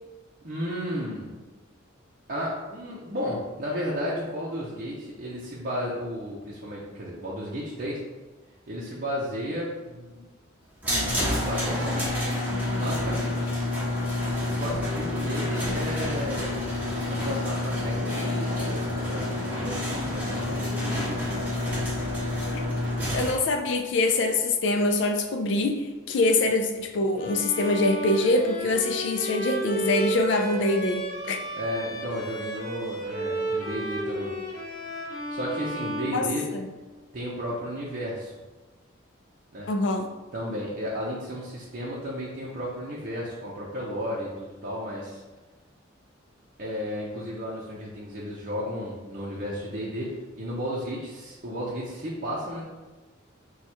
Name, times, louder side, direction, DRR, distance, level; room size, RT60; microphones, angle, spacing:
voice 1, 0.4-1.3 2.3-8.0 8.7-10.2 11.3-12.0 12.6-13.5 14.6-16.8 17.1-21.4 31.6-34.4 35.3-36.5 37.1-38.3 39.5-39.7 40.3-45.2 46.6-52.6, equal, 45° right, -6 dB, 0.7 m, -33 dB
sound 1, 10.8-23.3, left 1 dB, 10° right, 1.0 m, -28 dB
voice 2, 23.0-31.4 36.1-36.2 36.5-36.7 39.7-40.1, left 2 dB, 60° left, 4 dB, 0.4 m, -24 dB
Bowed string instrument, 27.2-36.9, right 1 dB, 45° left, 0.8 m, -33 dB
4.6 x 2.3 x 4.3 m, 1.2 s
head